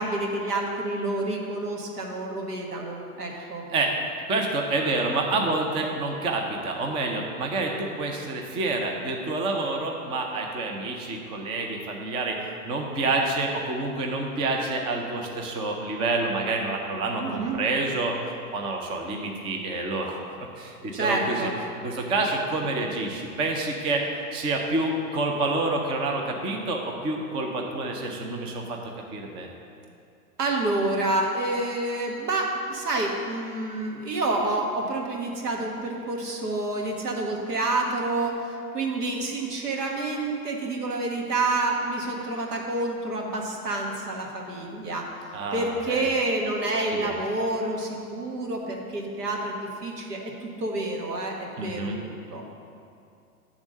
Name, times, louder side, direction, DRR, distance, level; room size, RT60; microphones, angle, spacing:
voice 1, 0.0-3.7 17.2-17.6 20.9-21.5 30.4-45.1 45.5-52.6, right 2 dB, 90° right, 0 dB, 1.5 m, -28 dB
voice 2, 3.4-3.9 4.3-18.2 18.5-21.5 21.8-24.0 24.3-28.8 29.1-29.5 45.3-46.1 46.9-47.2 51.6-52.0, right 2 dB, 15° right, 1 dB, 0.4 m, -28 dB
10.0 x 3.6 x 6.4 m, 2.5 s
hypercardioid pair, 120°, 46 cm